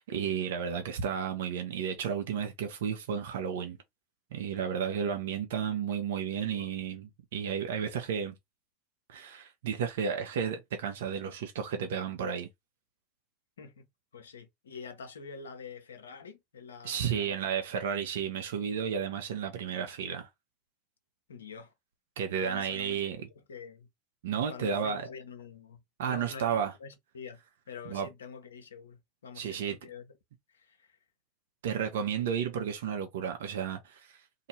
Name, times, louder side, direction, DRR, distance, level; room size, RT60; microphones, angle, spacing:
voice 1, 0.0-3.8 4.3-8.3 9.1-12.5 16.8-20.3 22.2-23.3 24.2-25.0 26.0-26.7 27.9-28.1 29.4-29.8 31.6-34.2, right 7 dB, 75° right, 0.8 m, -32 dB
voice 2, 14.1-17.5 21.3-21.7 22.3-23.9 24.5-27.4 27.7-30.1 30.5-31.0, left 5 dB, 90° left, 1.0 m, -46 dB
2.9 x 2.7 x 4.2 m
hypercardioid pair, 85°, 0 cm